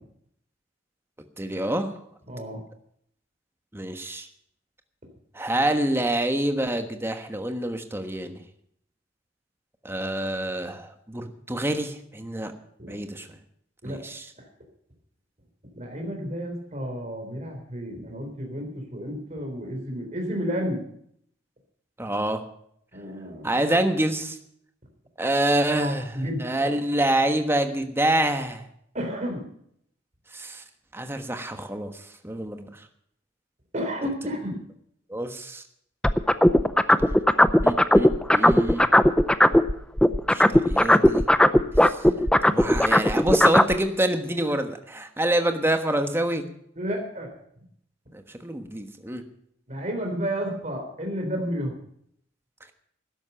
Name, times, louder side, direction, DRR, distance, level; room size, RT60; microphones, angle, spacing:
voice 1, 1.4-1.9 3.7-4.3 5.3-8.4 9.8-12.5 12.9-13.4 13.8-14.3 22.0-22.4 23.4-24.4 25.2-28.7 30.3-30.6 30.9-32.7 35.1-35.6 37.6-38.9 40.3-41.2 41.8-42.0 42.4-46.4 48.1-49.2, right 1 dB, 10° right, 6 dB, 1.2 m, -26 dB
voice 2, 2.3-2.6 12.8-12.9 13.8-14.0 15.7-20.8 22.9-23.5 25.8-26.7 28.9-29.4 33.7-34.6 46.8-47.3 49.7-51.7, equal, 40° right, 3 dB, 3.8 m, -31 dB
sound 1, 36.0-39.7 40.0-43.7, left 1 dB, 5° left, 0.5 m, -17 dB
13.0 x 10.5 x 6.8 m, 0.69 s
head